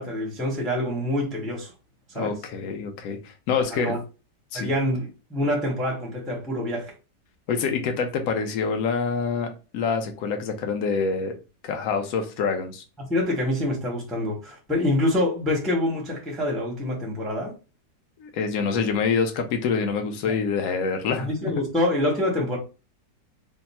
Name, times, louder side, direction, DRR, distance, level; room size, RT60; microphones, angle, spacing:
voice 1, 0.0-1.7 2.1-2.4 3.7-4.0 4.5-6.9 13.0-17.5 20.2-20.3 21.2-22.6, left 1 dB, ahead, 0.6 m, -26 dB
voice 2, 2.1-3.9 4.5-4.7 7.5-11.3 11.6-12.8 18.2-21.3, left 5 dB, 65° left, 1.1 m, -26 dB
3.4 x 2.1 x 4.1 m
omnidirectional pair, 1.9 m